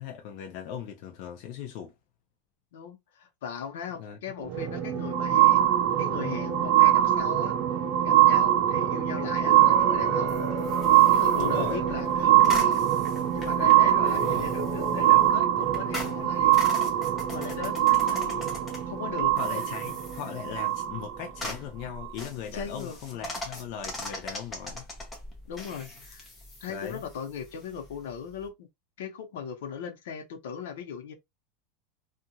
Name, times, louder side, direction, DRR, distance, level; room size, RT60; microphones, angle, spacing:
voice 1, 0.0-1.9 4.0-4.2 11.4-11.8 14.1-14.5 19.4-24.9 26.7-27.0, left 8 dB, 45° left, 0.5 m, -38 dB
voice 2, 2.7-5.7 6.0-7.5 8.0-10.4 11.1-12.9 13.3-16.7 17.3-19.4 22.5-23.4 25.5-26.3 26.6-28.7 29.0-31.1, left 7 dB, 75° left, 0.9 m, -38 dB
sound 1, 4.4-21.3 22.0-22.1, right 12 dB, 35° right, 0.5 m, -23 dB
sound 2, 9.4-15.3, left 2 dB, 5° right, 1.5 m, -38 dB
sound 3, 10.3-28.5, left 1 dB, 10° left, 0.8 m, -42 dB
2.8 x 2.4 x 2.7 m
supercardioid pair, 175°, 0 cm